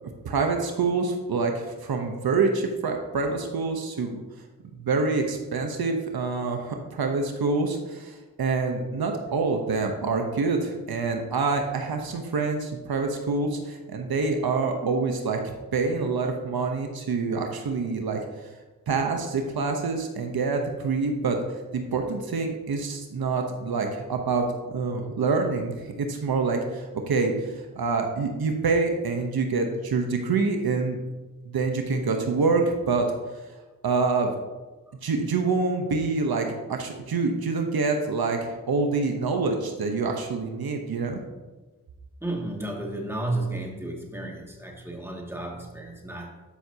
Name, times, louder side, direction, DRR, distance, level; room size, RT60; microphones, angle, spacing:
voice 1, 0.0-4.2 4.7-15.4 15.7-18.2 18.9-21.4 21.7-24.5 24.7-31.0 31.5-33.1 33.8-34.3 35.0-41.2, right 4 dB, 80° right, 3 dB, 0.9 m, -26 dB
voice 2, 42.2-46.4, right 2 dB, 5° right, -1 dB, 2.1 m, -33 dB
13.0 x 5.8 x 2.8 m, 1.2 s
cardioid pair, 45°, 37 cm